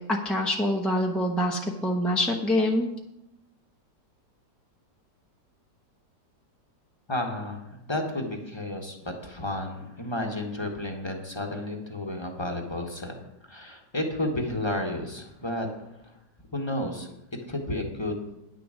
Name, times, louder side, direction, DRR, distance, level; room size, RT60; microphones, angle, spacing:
voice 1, 0.1-2.9, left 1 dB, ahead, 0 dB, 0.5 m, -25 dB
voice 2, 7.1-16.2 16.5-17.1 17.5-18.2, left 1 dB, 20° left, 2 dB, 1.0 m, -32 dB
9.9 x 6.9 x 6.2 m, 0.89 s
omnidirectional pair, 1.9 m